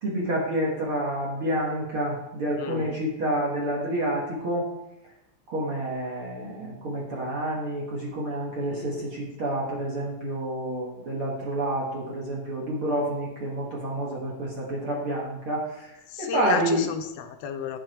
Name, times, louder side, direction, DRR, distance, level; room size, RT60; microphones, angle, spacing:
voice 1, 0.0-4.7 5.5-15.9 16.2-16.9, right 1 dB, 45° right, -3 dB, 2.7 m, -29 dB
voice 2, 2.6-2.9 8.7-9.1 16.1-17.8, left 7 dB, 80° left, 7 dB, 1.4 m, -32 dB
10.0 x 8.7 x 4.6 m, 0.87 s
omnidirectional pair, 3.9 m